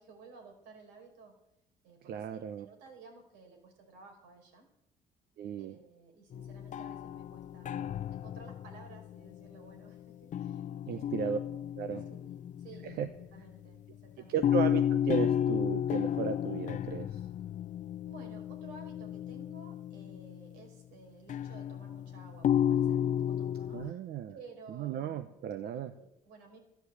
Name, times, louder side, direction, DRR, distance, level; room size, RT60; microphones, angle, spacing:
voice 1, 0.0-1.4 1.8-4.7 5.6-11.4 12.1-13.0 13.3-14.6 18.0-24.0 24.3-25.4 25.7-26.6, right 4 dB, 90° right, 2 dB, 5.1 m, -55 dB
voice 2, 2.1-2.7 5.4-5.7 10.9-11.4 11.8-12.0 13.0-13.1 14.3-17.2 23.7-24.3 24.7-25.9, right 8 dB, 65° right, 9 dB, 1.0 m, -35 dB
sound 1, 6.3-9.9 10.3-13.6 14.4-20.5 21.3-23.9, left 9 dB, 50° left, 0.6 m, -33 dB
13.5 x 10.5 x 8.2 m, 0.83 s
cardioid pair, 110°, 17 cm